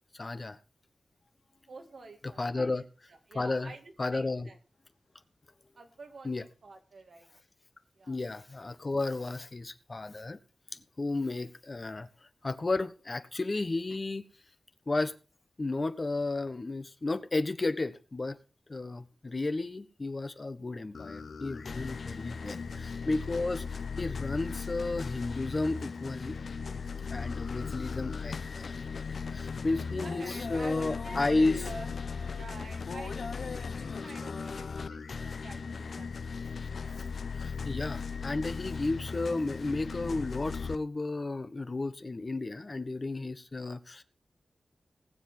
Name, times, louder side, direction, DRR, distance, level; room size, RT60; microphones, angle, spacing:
voice 1, 0.1-0.6 2.2-2.8 3.3-3.7 4.0-4.5 6.2-6.4 8.1-10.4 10.7-12.1 12.4-14.2 14.9-15.1 15.6-18.4 18.7-26.4 27.1-31.6 37.3-44.0, left 2 dB, 40° left, 1.2 m, -33 dB
voice 2, 1.7-4.6 5.8-7.3 8.0-8.2 22.6-23.1 29.9-31.9 32.3-36.5, right 3 dB, 75° right, 2.2 m, -49 dB
sound 1, 20.9-40.8, left 5 dB, 75° left, 0.7 m, -37 dB
19.0 x 7.4 x 4.4 m
cardioid pair, 55°, 0 cm